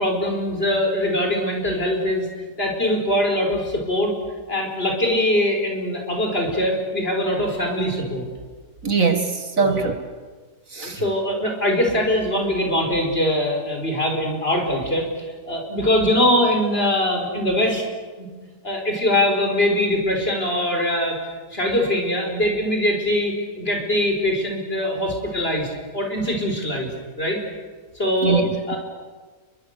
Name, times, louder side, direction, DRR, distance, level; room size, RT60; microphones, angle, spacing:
voice 1, 0.0-2.3 2.6-4.1 4.5-8.2 9.6-9.9 10.8-17.8 18.2-18.3 18.6-21.2 21.5-26.9 27.2-27.4 27.9-28.4 28.7-28.8, left 1 dB, 35° left, 2 dB, 5.0 m, -22 dB
voice 2, 8.8-10.0 10.7-11.0 28.2-28.8, right 5 dB, 55° right, 6 dB, 2.1 m, -22 dB
30.0 x 22.5 x 6.7 m, 1.4 s
omnidirectional pair, 1.7 m